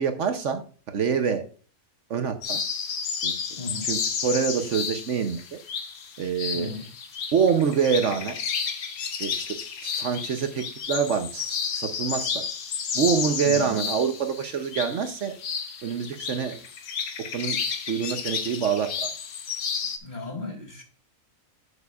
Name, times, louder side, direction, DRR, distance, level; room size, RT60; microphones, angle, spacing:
voice 1, 0.0-1.4 2.1-2.6 3.2-3.3 3.8-5.6 6.2-6.7 7.3-8.4 9.2-12.5 12.9-15.4 15.8-16.6 17.3-17.6 17.9-19.1, right 6 dB, 65° right, 1.0 m, -26 dB
sound 1, 2.4-20.0, left 6 dB, 85° left, 1.4 m, -32 dB
voice 2, 3.6-3.9 6.5-6.9 13.4-13.7 20.0-20.8, left 3 dB, 30° left, 1.8 m, -34 dB
10.5 x 7.0 x 2.4 m
omnidirectional pair, 1.5 m